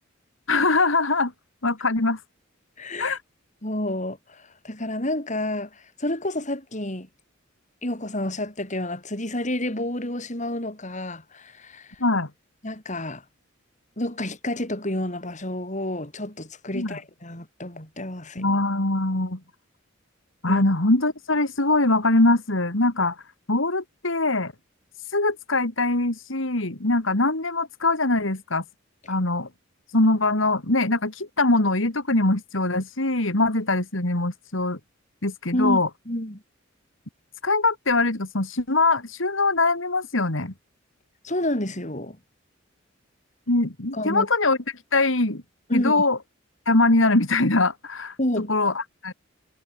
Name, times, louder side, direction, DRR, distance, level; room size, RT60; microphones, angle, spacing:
voice 1, 0.5-1.3 1.6-2.2 3.0-3.2 12.0-12.3 16.7-17.0 18.4-19.4 20.4-23.2 23.5-24.5 25.1-28.6 29.1-29.5 29.9-34.8 35.2-35.9 37.4-40.5 43.5-44.6 44.9-45.4 45.7-46.2 46.7-49.1, left 2 dB, 70° left, 2.9 m, -22 dB
voice 2, 2.8-3.2 3.6-7.1 7.8-11.9 12.6-13.2 14.0-18.6 20.5-20.6 35.5-35.8 36.1-36.4 41.2-42.2 43.9-44.3 45.7-46.0 48.2-48.5, left 1 dB, 35° left, 5.6 m, -29 dB
head